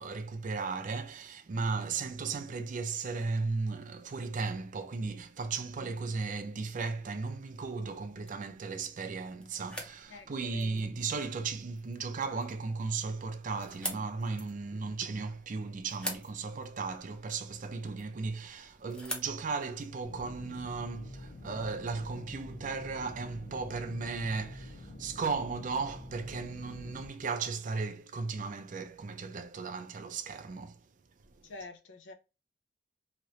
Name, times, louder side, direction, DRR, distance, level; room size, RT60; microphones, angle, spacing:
voice 1, 0.0-30.8, right 4 dB, 45° right, 0.4 m, -36 dB
voice 2, 5.6-6.0 10.1-10.9 31.4-32.1, left 2 dB, 80° left, 0.5 m, -48 dB
sound 1, 7.7-20.6, equal, 5° left, 0.6 m, -47 dB
sound 2, 20.0-27.1, left 1 dB, 60° left, 0.9 m, -46 dB
3.0 x 2.8 x 2.7 m
head